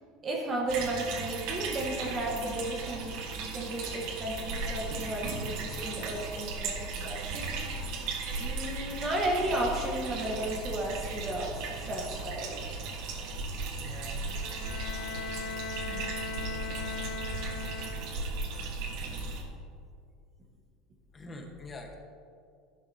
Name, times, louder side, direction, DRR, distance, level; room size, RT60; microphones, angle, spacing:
voice 1, 0.2-7.5 8.4-12.6 15.9-16.1, right 1 dB, 25° right, -2 dB, 1.4 m, -34 dB
sound 1, 0.7-19.4, right 3 dB, 55° right, 1.6 m, -36 dB
voice 2, 13.0-14.4 19.2-19.3 21.1-22.0, left 2 dB, 15° left, 2 dB, 1.3 m, -47 dB
Bowed string instrument, 14.3-18.4, left 5 dB, 55° left, 0.9 m, -39 dB
12.5 x 11.5 x 2.9 m, 2.3 s
cardioid pair, 150°, 0 cm